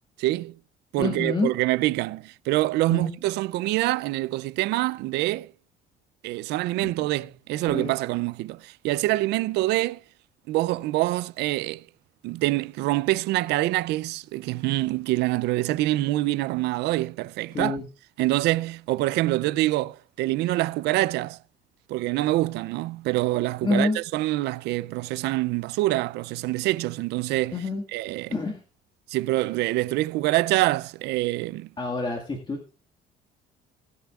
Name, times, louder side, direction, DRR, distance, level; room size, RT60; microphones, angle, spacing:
voice 1, 0.2-0.5 0.9-5.5 6.2-10.0 10.5-11.8 12.2-17.8 18.2-21.4 21.9-27.6 27.9-28.3 29.1-31.7, right 17 dB, 80° right, 0.4 m, -25 dB
voice 2, 1.0-1.5 2.9-3.2 6.8-6.9 7.7-7.9 17.5-17.8 20.4-20.5 23.6-24.0 27.5-27.8 28.3-28.6 31.8-32.7, left 3 dB, 25° left, 1.8 m, -27 dB
20.0 x 7.0 x 2.4 m
cardioid pair, 110°, 17 cm